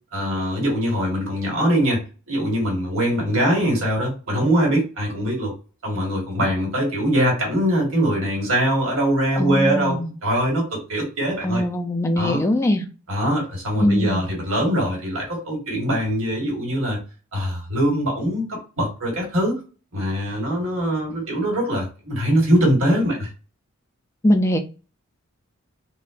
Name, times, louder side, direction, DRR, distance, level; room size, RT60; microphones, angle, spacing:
voice 1, 0.1-5.5 5.8-10.0 10.2-11.6 12.2-12.4 13.1-17.0 17.3-18.4 18.8-19.6 19.9-23.3, equal, 70° right, 1.5 m, -22 dB
voice 2, 9.4-10.1 11.4-12.8 13.8-14.3 24.2-24.6, left 1 dB, 15° left, 0.3 m, -21 dB
3.6 x 2.1 x 2.4 m
head